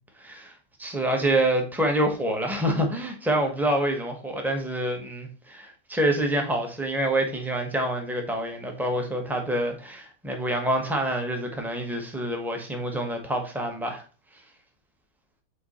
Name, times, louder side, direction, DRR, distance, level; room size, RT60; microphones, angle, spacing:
voice 1, 0.2-0.5 0.8-14.0, right 1 dB, ahead, 0.5 m, -27 dB
7.8 x 3.0 x 4.1 m
omnidirectional pair, 2.1 m